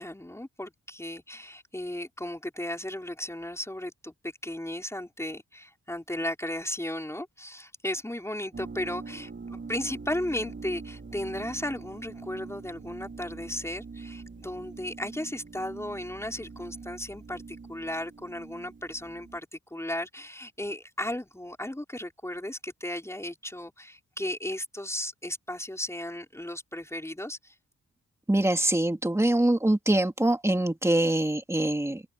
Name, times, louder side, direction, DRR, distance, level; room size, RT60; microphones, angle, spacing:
voice 1, 0.0-27.5, left 1 dB, 10° left, 4.8 m, -35 dB
sound 1, 8.5-19.4, right 4 dB, 35° right, 4.3 m, -43 dB
voice 2, 28.3-32.0, right 1 dB, 10° right, 2.6 m, -24 dB
cardioid pair, 95°, 31 cm